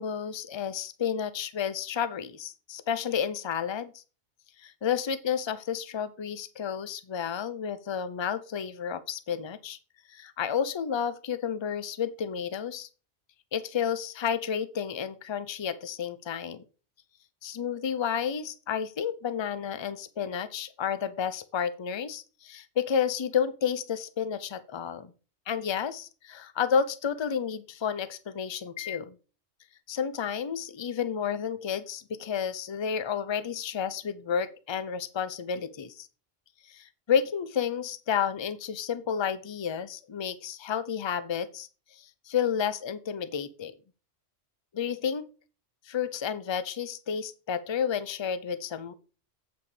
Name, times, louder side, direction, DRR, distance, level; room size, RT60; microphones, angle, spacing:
voice 1, 0.0-4.0 4.6-9.8 10.1-12.9 13.5-16.6 17.4-25.1 25.5-29.2 29.9-36.1 36.7-43.7 44.7-45.3 45.9-48.9, left 7 dB, 35° left, 14 dB, 0.4 m, -31 dB
8.2 x 5.4 x 4.9 m, 0.35 s
omnidirectional pair, 1.2 m